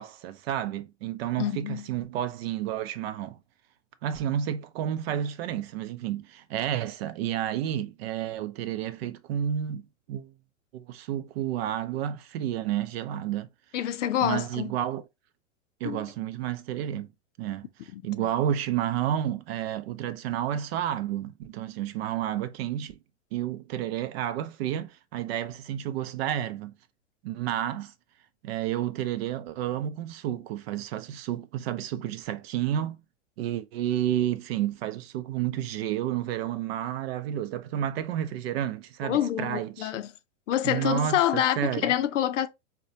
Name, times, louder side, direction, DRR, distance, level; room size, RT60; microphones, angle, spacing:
voice 1, 0.0-3.4 4.0-9.8 10.1-10.3 10.7-13.5 14.2-15.0 15.8-17.1 17.4-23.0 23.3-26.7 27.2-27.9 28.4-33.0 33.4-39.9 40.6-41.9, right 11 dB, 55° right, 0.6 m, -31 dB
voice 2, 1.4-1.8 13.7-14.7 15.8-16.1 17.9-18.3 39.0-40.1 40.5-42.5, left 11 dB, 80° left, 0.6 m, -27 dB
4.2 x 2.2 x 2.6 m
hypercardioid pair, 125°, 37 cm